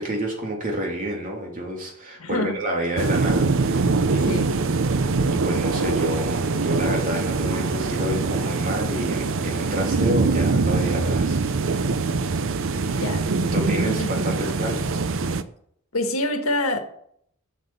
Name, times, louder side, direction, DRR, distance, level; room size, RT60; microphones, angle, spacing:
voice 1, 0.0-4.7 5.3-11.4 12.8-13.0 13.5-15.0, equal, 40° right, 3.0 m, -29 dB
voice 2, 2.2-2.6 4.2-4.4 13.0-13.2 13.8-14.1 15.9-16.8, left 1 dB, 75° left, 1.7 m, -25 dB
sound 1, 3.0-15.4, right 3 dB, 65° right, 0.6 m, -23 dB
8.0 x 7.3 x 7.3 m
head